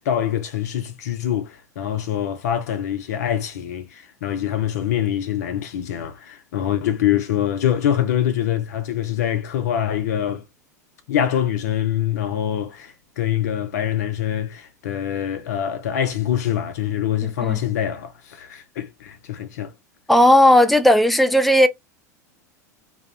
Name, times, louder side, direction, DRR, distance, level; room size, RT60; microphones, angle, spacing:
voice 1, 0.0-10.4 11.1-19.7, left 10 dB, 65° left, 0.4 m, -24 dB
voice 2, 20.1-21.7, left 1 dB, ahead, 0.4 m, -14 dB
2.2 x 2.0 x 2.8 m
hypercardioid pair, 85°, 9 cm